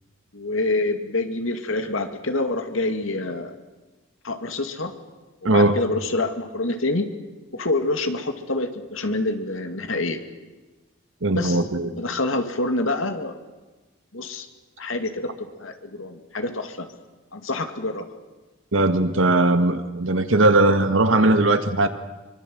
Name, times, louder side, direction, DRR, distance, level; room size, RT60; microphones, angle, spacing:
voice 1, 0.3-3.5 4.2-4.9 5.4-7.1 7.5-10.2 11.3-11.6 11.9-13.3 14.1-14.5 14.8-16.9 17.3-18.2, left 2 dB, 75° left, 2.4 m, -26 dB
voice 2, 5.4-5.8 11.2-11.9 18.7-21.9, right 2 dB, 75° right, 1.8 m, -19 dB
24.5 x 24.0 x 7.9 m
head